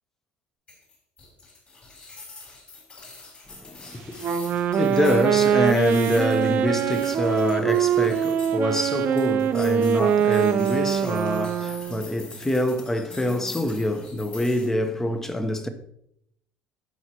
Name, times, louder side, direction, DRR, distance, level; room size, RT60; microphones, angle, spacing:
sound 1, 0.7-14.7, left 3 dB, 30° left, 3.5 m, -45 dB
voice 1, 3.5-15.7, left 1 dB, 10° left, 0.9 m, -26 dB
Wind instrument woodwind instrument, 4.2-12.1, right 9 dB, 45° right, 0.6 m, -23 dB
16.0 x 5.7 x 2.9 m
cardioid pair, 140°, 4 cm